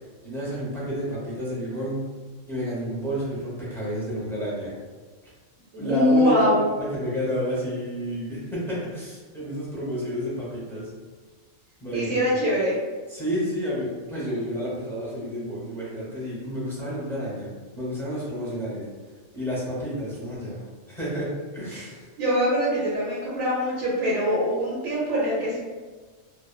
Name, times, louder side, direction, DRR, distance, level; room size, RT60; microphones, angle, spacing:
voice 1, 0.2-2.1 2.5-4.7 5.8-6.5 6.8-10.9 11.8-12.4 13.1-17.5 17.7-18.9 19.3-20.6 20.9-22.1, equal, 5° left, -8 dB, 0.4 m, -30 dB
voice 2, 5.7-6.6 11.9-12.8 21.7-21.8 22.2-25.6, equal, 80° right, -6 dB, 1.0 m, -23 dB
2.8 x 2.0 x 2.2 m, 1.4 s
omnidirectional pair, 1.4 m